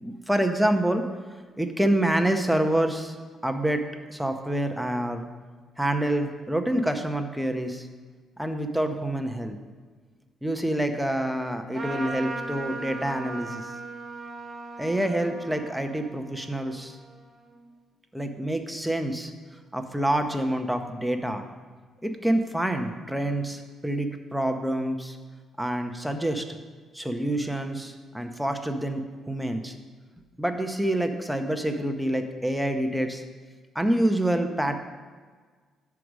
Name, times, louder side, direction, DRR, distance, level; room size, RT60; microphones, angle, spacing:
voice 1, 0.0-1.0 1.6-3.1 3.4-5.3 5.8-7.9 8.4-9.6 10.4-13.7 14.8-17.0 18.1-19.3 19.7-21.4 22.0-25.2 25.6-26.5 26.9-29.7 30.4-33.2 33.7-34.8, right 1 dB, ahead, 6 dB, 0.8 m, -27 dB
Trumpet, 11.7-17.6, right 3 dB, 30° right, 1.4 m, -38 dB
7.8 x 4.8 x 6.1 m, 1.5 s
cardioid pair, 90°, 0 cm